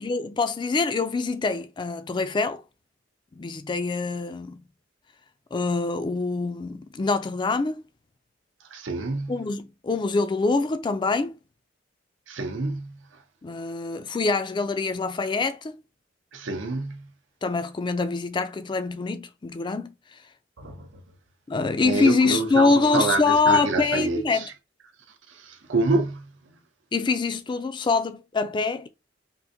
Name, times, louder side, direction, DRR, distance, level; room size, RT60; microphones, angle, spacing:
voice 1, 0.0-2.6 3.3-4.6 5.5-7.9 9.3-11.4 13.4-15.8 17.4-20.2 21.5-24.5 26.9-28.9, left 4 dB, 25° left, 0.3 m, -25 dB
voice 2, 8.7-9.4 12.3-13.0 16.3-17.1 20.6-20.9 21.8-24.5 25.3-26.3, right 3 dB, 75° right, 0.7 m, -27 dB
3.6 x 2.5 x 2.6 m
head